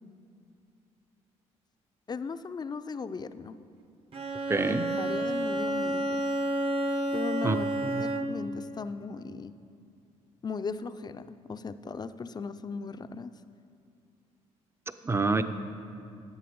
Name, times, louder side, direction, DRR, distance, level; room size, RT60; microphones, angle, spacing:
voice 1, 2.1-3.6 4.7-6.2 7.1-9.6 10.4-13.3, left 4 dB, 30° left, 12 dB, 0.5 m, -37 dB
Bowed string instrument, 4.1-8.5, right 1 dB, 40° right, 0.9 m, -30 dB
voice 2, 4.5-4.9 7.4-8.0 15.0-15.4, right 3 dB, 20° right, 10 dB, 0.6 m, -27 dB
11.0 x 7.6 x 5.3 m, 2.5 s
supercardioid pair, 70°, 14 cm